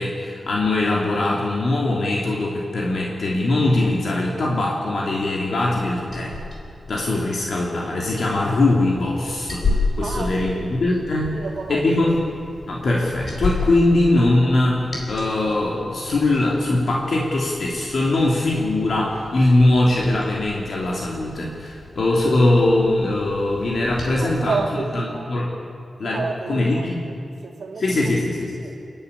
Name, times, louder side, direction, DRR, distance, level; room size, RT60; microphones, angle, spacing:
voice 1, 0.0-6.4 6.9-9.6 10.0-11.3 11.7-12.2 12.7-24.5 24.9-25.5 26.0-26.2 26.5-27.0 27.8-28.6, left 2 dB, 65° left, 3.0 m, -21 dB
Liquid, 5.6-24.2, left 3 dB, 35° left, 4.6 m, -33 dB
voice 2, 10.0-10.8 11.3-12.2 24.0-25.4 26.0-27.2 27.4-28.1 28.6-28.8, right 4 dB, 80° right, 2.2 m, -31 dB
29.0 x 11.0 x 9.9 m
wide cardioid pair, 155°, 0 cm